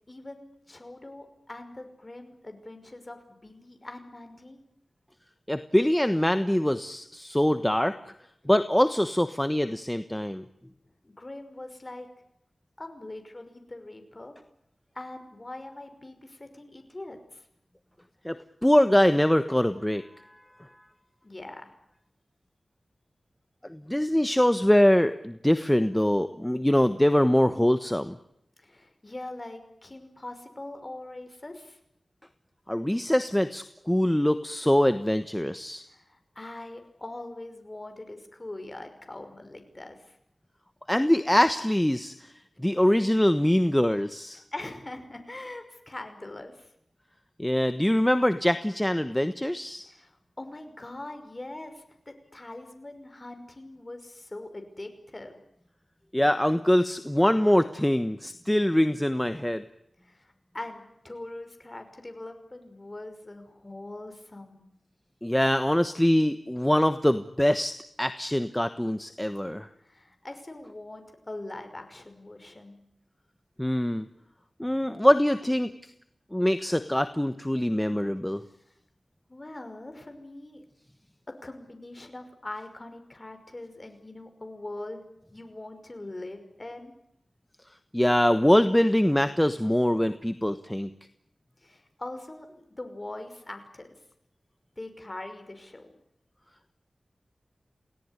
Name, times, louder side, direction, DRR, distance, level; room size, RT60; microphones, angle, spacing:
voice 1, 0.1-4.6 11.0-12.1 12.8-14.4 14.9-17.4 21.2-21.7 28.6-31.8 35.9-40.2 44.5-46.7 49.8-55.3 60.0-64.7 69.8-72.8 79.3-80.6 81.4-85.0 85.3-86.9 91.6-94.0 94.8-96.0, left 2 dB, 30° left, 6 dB, 5.6 m, -42 dB
voice 2, 5.5-8.0 8.4-10.4 18.2-20.0 23.6-28.2 32.7-35.8 40.9-42.1 42.6-44.4 47.4-49.9 56.1-59.7 65.2-67.7 68.0-69.7 73.6-74.1 74.6-75.7 76.3-78.4 87.9-90.9, left 1 dB, 10° left, 10 dB, 1.2 m, -23 dB
28.5 x 18.0 x 9.8 m, 0.78 s
wide cardioid pair, 90°, 0 cm